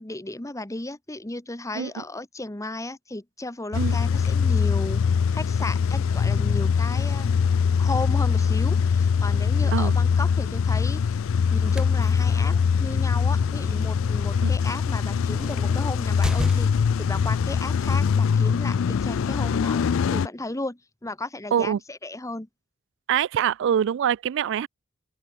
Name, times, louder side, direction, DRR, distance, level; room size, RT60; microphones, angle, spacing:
voice 1, 0.0-5.0 5.3-7.4 7.8-11.0 11.5-16.7 17.0-19.8 20.1-22.5, left 2 dB, 15° left, 1.3 m, -34 dB
Car / Engine starting / Idling, 3.7-20.3, left 6 dB, 70° left, 0.4 m, -22 dB
voice 2, 9.6-9.9 14.4-14.5 21.5-21.8 23.1-24.7, right 9 dB, 60° right, 0.3 m, -24 dB
sound 1, 11.5-17.0, equal, 5° right, 0.5 m, -38 dB
open air
head